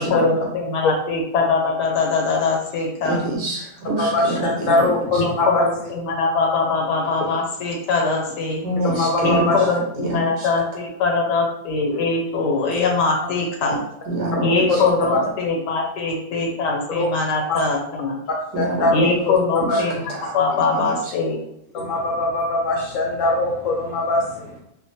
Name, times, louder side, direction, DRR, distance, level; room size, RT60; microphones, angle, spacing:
voice 1, 0.0-3.2 5.2-8.6 9.2-13.8 14.4-18.2 18.9-21.4, left 4 dB, 90° left, 1 dB, 1.3 m, -22 dB
voice 2, 3.0-4.9 5.1-5.2 8.6-10.5 14.1-14.8 18.5-18.9 19.6-20.3 20.7-21.1, right 1 dB, 85° right, -2 dB, 1.5 m, -26 dB
voice 3, 4.0-5.6 8.9-9.6 12.7-12.8 14.4-15.2 16.9-17.1 17.5-17.6 18.6-19.1 19.7-19.8 21.7-24.6, left 2 dB, 70° left, -1 dB, 0.8 m, -22 dB
3.1 x 2.2 x 2.6 m, 0.78 s
omnidirectional pair, 1.8 m